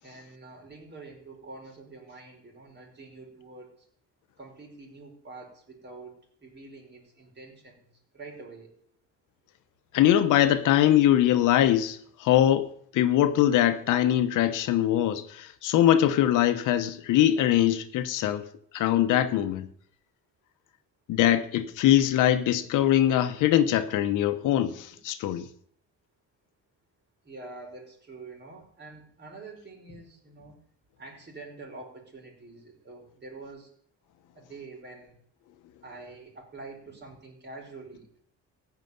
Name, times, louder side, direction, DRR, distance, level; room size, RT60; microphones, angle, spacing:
voice 1, 0.0-3.9 4.4-7.9 8.1-8.7 27.2-30.6 31.0-33.7 34.3-35.1 35.8-38.2, right 3 dB, 35° right, 5.0 m, -46 dB
voice 2, 9.9-19.7 21.1-25.5, left 12 dB, 90° left, 1.1 m, -22 dB
15.0 x 5.1 x 9.4 m
cardioid pair, 90°, 30 cm